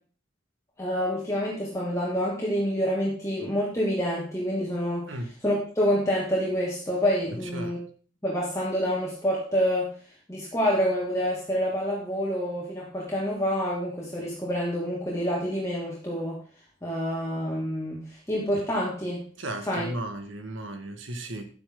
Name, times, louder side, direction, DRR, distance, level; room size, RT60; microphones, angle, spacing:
voice 1, 0.8-5.0 5.4-7.8 8.2-9.9 10.3-16.4 16.8-19.2 19.7-19.9, equal, 15° left, -5 dB, 2.4 m, -27 dB
voice 2, 19.4-21.5, right 1 dB, 90° right, 6 dB, 2.0 m, -35 dB
11.5 x 9.0 x 3.9 m, 0.40 s
head